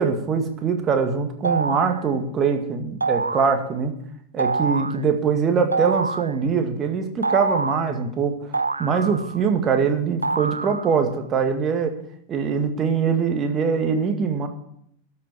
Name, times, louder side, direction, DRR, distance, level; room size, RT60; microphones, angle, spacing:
voice 1, 0.0-3.9 4.3-8.3 8.8-11.9 12.3-14.5, right 6 dB, 25° right, 6 dB, 2.0 m, -23 dB
sound 1, 1.4-2.0 3.0-3.6 4.4-5.0 5.7-6.3 7.2-7.9 8.5-9.5 10.2-11.1, right 3 dB, 80° right, 0.5 m, -26 dB
12.5 x 7.3 x 8.6 m, 0.71 s
figure-of-eight pair, 90°, 0 cm